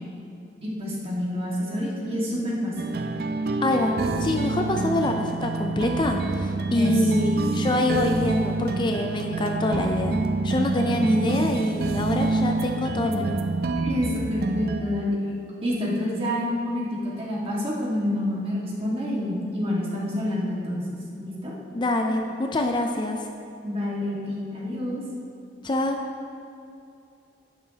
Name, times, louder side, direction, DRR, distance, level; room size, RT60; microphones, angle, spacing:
voice 1, 0.6-2.8 6.7-7.3 13.8-15.2 15.6-21.5 23.6-25.0, left 1 dB, 35° right, -5 dB, 1.7 m, -28 dB
sound 1, 2.8-14.8, right 3 dB, 60° right, 0.5 m, -27 dB
voice 2, 3.6-10.2 10.4-13.4 21.7-23.3 25.6-26.0, left 1 dB, 25° left, 3 dB, 0.4 m, -25 dB
11.0 x 8.7 x 2.8 m, 2.6 s
head